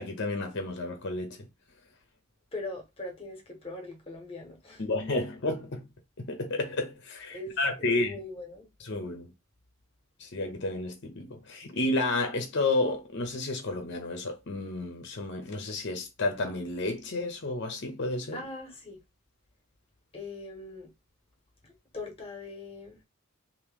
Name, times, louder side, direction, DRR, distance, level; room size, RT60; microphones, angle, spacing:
voice 1, 0.0-1.4 4.8-5.9 6.2-8.2 8.8-9.3 10.2-18.4, left 2 dB, 55° left, 0.8 m, -31 dB
voice 2, 2.5-4.8 7.3-8.7 18.3-19.0 20.1-20.9 21.6-23.0, left 2 dB, 30° left, 1.2 m, -41 dB
3.0 x 2.7 x 3.5 m
head